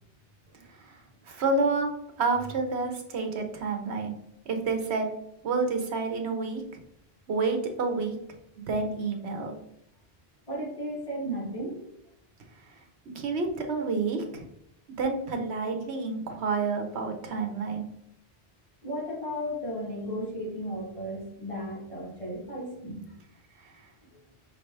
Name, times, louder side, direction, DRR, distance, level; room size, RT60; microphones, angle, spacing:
voice 1, 1.3-1.9 2.2-4.1 4.5-5.1 5.4-6.8 7.3-8.2 8.6-9.5 13.1-14.5 15.0-17.8, right 3 dB, 85° right, 4 dB, 1.1 m, -29 dB
voice 2, 10.5-11.8 18.8-23.1 24.1-24.2, equal, 30° left, -4 dB, 1.4 m, -35 dB
5.7 x 2.9 x 3.2 m, 0.76 s
omnidirectional pair, 1.1 m